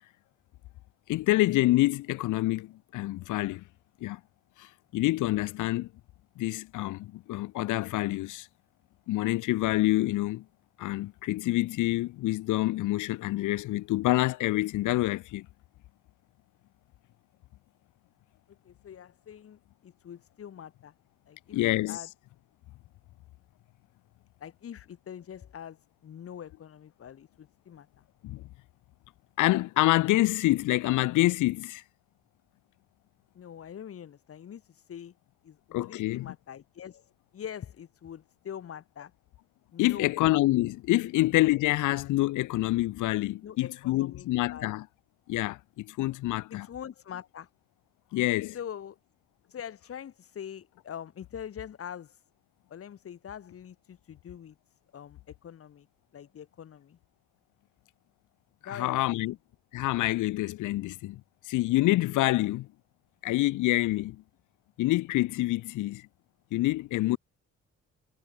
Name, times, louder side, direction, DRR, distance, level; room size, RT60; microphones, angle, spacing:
voice 1, 1.1-3.6 4.0-4.2 4.6-4.7 4.9-5.9 6.4-8.5 9.1-10.4 10.8-15.5 21.5-22.0 28.2-28.4 29.4-31.8 35.7-36.3 39.8-44.8 45.3-46.7 48.1-48.6 58.8-59.3 59.7-61.2 61.5-62.7 63.2-64.2 64.8-66.1 66.5-67.2, left 17 dB, 80° left, 0.7 m, -27 dB
voice 2, 18.6-20.9 21.3-22.1 24.4-27.9 33.3-35.1 35.4-39.1 39.7-40.1 41.0-41.1 43.4-44.7 46.5-47.5 48.5-49.0 49.5-52.2 52.7-55.9 56.1-57.0 58.6-59.3, left 9 dB, 50° left, 1.3 m, -44 dB
cardioid pair, 90°, 30 cm